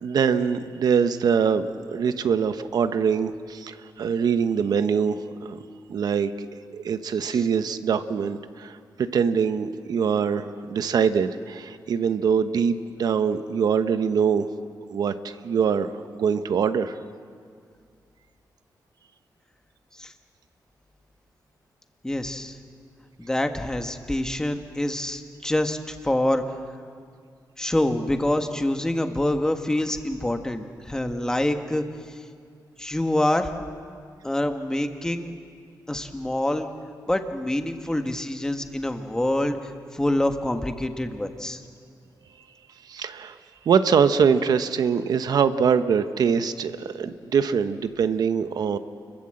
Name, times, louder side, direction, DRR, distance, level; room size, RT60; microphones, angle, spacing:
voice 1, 0.0-5.6 5.9-6.5 6.7-14.5 14.9-17.0 42.8-43.4 43.6-48.8, right 6 dB, 65° right, 10 dB, 1.0 m, -23 dB
voice 2, 22.0-22.6 23.2-26.4 27.6-31.8 32.8-33.5 34.2-35.3 35.9-36.7 37.1-39.6 39.9-41.6, left 1 dB, 10° left, 6 dB, 1.4 m, -26 dB
29.5 x 22.5 x 7.8 m, 2.2 s
wide cardioid pair, 160°, 7 cm